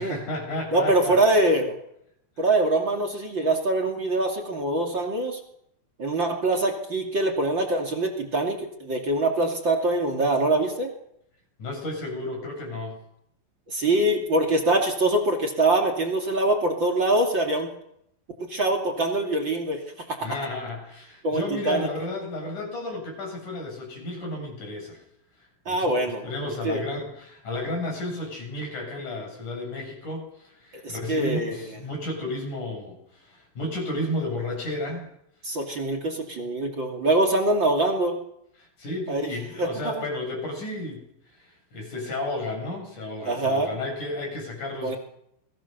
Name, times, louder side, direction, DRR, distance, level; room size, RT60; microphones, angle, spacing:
voice 1, 0.0-1.2 11.6-13.0 20.2-25.0 25.7-35.1 38.8-41.0 41.4-45.0, left 2 dB, 40° left, 2 dB, 8.6 m, -32 dB
voice 2, 0.7-1.7 2.4-5.4 6.0-10.9 13.7-17.7 18.4-19.8 20.1-20.2 21.2-21.9 25.6-26.3 26.6-26.8 30.8-31.7 35.4-38.2 39.1-39.3 39.6-40.0 43.2-43.7 44.8-44.9, right 2 dB, 35° right, 5 dB, 2.2 m, -24 dB
29.0 x 21.5 x 6.7 m, 0.78 s
omnidirectional pair, 5.8 m